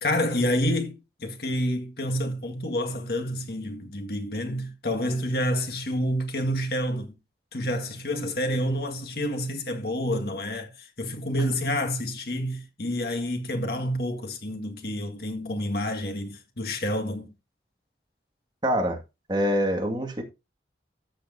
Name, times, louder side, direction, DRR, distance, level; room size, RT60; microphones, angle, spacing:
voice 1, 0.0-7.2 7.5-17.3, left 1 dB, 55° left, 1.8 m, -28 dB
voice 2, 18.6-19.0 19.3-20.2, equal, 25° right, 2.0 m, -25 dB
14.5 x 6.6 x 2.7 m
head